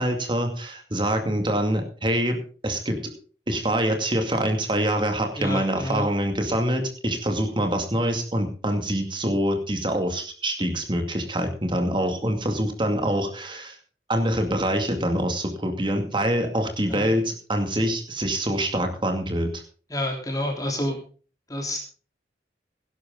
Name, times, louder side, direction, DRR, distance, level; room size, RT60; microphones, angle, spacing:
voice 1, 0.0-3.1 3.5-13.8 14.1-19.6, right 1 dB, 30° right, 4 dB, 2.3 m, -25 dB
voice 2, 5.4-6.0 16.9-17.1 19.9-21.0 21.5-21.8, left 1 dB, 20° left, 1 dB, 3.4 m, -28 dB
17.5 x 11.5 x 3.8 m, 0.39 s
head